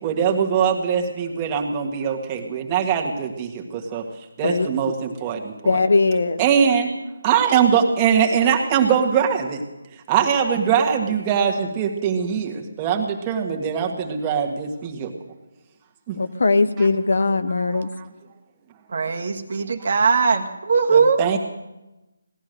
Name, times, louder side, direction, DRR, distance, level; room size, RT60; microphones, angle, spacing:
voice 1, 0.0-4.0 4.4-5.8 6.4-6.9 7.2-9.6 10.1-15.1 16.1-16.2 16.8-16.9 17.6-17.8 20.9-21.4, right 7 dB, 20° right, 2 dB, 1.7 m, -22 dB
voice 2, 5.6-6.4 16.1-17.9, left 3 dB, 60° left, 10 dB, 0.9 m, -20 dB
voice 3, 18.9-21.4, right 5 dB, 50° right, 5 dB, 1.4 m, -20 dB
17.5 x 11.5 x 6.6 m, 1.0 s
figure-of-eight pair, 155°, 0 cm